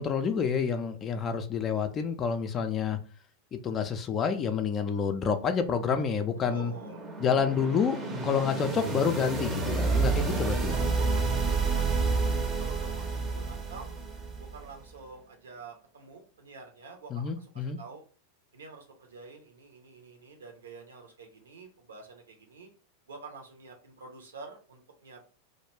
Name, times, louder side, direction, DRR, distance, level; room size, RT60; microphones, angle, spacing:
voice 1, 0.0-3.0 3.5-6.7 7.2-10.8 17.1-17.8, left 6 dB, 25° left, 0.3 m, -28 dB
sound 1, 6.2-14.8, right 4 dB, 20° right, 0.6 m, -30 dB
voice 2, 6.5-7.1 9.7-14.0 14.4-18.1 18.5-22.7 23.1-25.2, right 4 dB, 70° right, 0.7 m, -48 dB
2.3 x 2.1 x 3.1 m
figure-of-eight pair, 90°, 0 cm